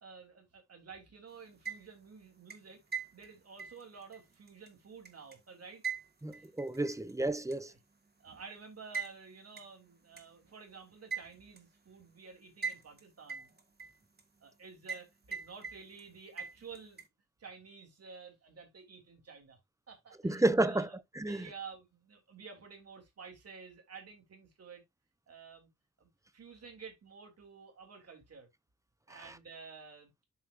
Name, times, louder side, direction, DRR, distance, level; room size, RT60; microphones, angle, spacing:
voice 1, 0.0-5.8 6.3-6.5 7.0-7.1 7.7-7.8 8.2-13.5 14.4-17.0 17.4-19.6 19.9-21.0 21.2-24.8 25.3-25.7 26.0-28.5 29.1-30.1, right 5 dB, 55° right, 3.3 m, -51 dB
sound 1, 1.4-2.1 2.5-5.4 5.8-7.1 7.5-7.6 8.9-9.1 9.6-9.7 10.2-10.3 11.1-11.6 12.6-13.0 13.3-14.2 14.9-15.1 15.3-16.0 16.4-17.1, right 6 dB, 35° right, 1.7 m, -41 dB
voice 2, 6.2-7.7 20.2-20.9 21.2-21.4 29.1-29.3, right 2 dB, 10° right, 0.8 m, -31 dB
12.0 x 4.4 x 2.5 m
cardioid pair, 95°, 30 cm